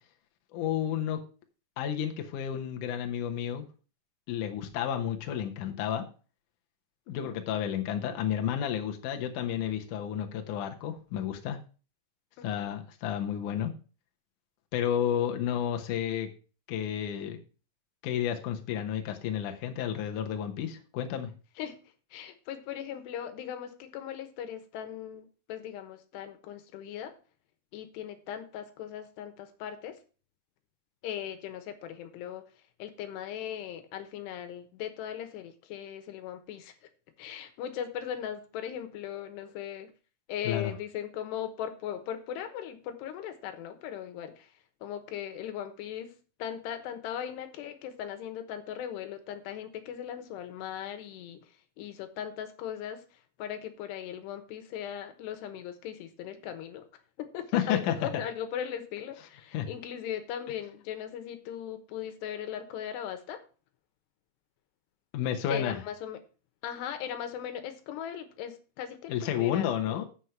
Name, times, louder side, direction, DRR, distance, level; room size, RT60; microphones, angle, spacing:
voice 1, 0.5-1.2 1.8-3.6 4.3-6.1 7.1-11.6 12.4-13.7 14.7-16.3 16.7-17.4 18.0-21.3 40.4-40.7 57.5-58.0 59.5-59.7 65.1-65.8 69.1-70.0, left 9 dB, 65° left, 4 dB, 2.2 m, -31 dB
voice 2, 7.1-7.4 12.4-12.7 21.6-21.8 22.1-27.1 27.7-30.0 31.0-36.9 37.2-39.9 40.3-44.5 44.8-56.9 57.2-63.4 65.5-66.2 66.6-70.1, left 9 dB, 85° left, 9 dB, 3.2 m, -39 dB
8.0 x 6.4 x 5.7 m, 0.36 s
omnidirectional pair, 4.7 m